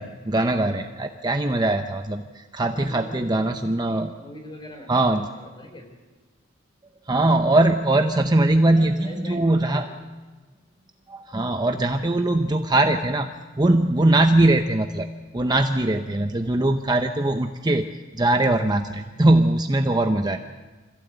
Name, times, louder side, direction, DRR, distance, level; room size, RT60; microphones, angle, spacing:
voice 1, 0.0-4.1 4.9-5.3 7.1-9.9 11.1-15.1 15.3-17.9 18.1-20.4, right 2 dB, 20° right, 6 dB, 0.8 m, -21 dB
voice 2, 2.7-3.4 4.1-4.9 5.3-5.9 8.6-9.8 13.8-14.1 16.1-16.5 18.1-18.2, left 1 dB, 20° left, 3 dB, 4.3 m, -42 dB
25.5 x 15.5 x 8.2 m, 1.3 s
head